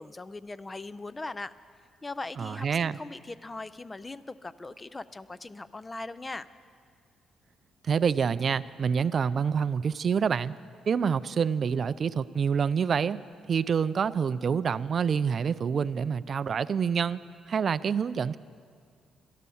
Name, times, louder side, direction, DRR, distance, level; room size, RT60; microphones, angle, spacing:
voice 1, 0.0-1.5 2.0-6.5, left 2 dB, 20° left, 16 dB, 0.4 m, -40 dB
voice 2, 2.4-3.0 7.8-10.5 10.9-13.2 13.5-17.2 17.5-18.4, right 6 dB, 50° right, 15 dB, 0.3 m, -27 dB
12.0 x 11.5 x 7.0 m, 2.1 s
cardioid pair, 90°, 0 cm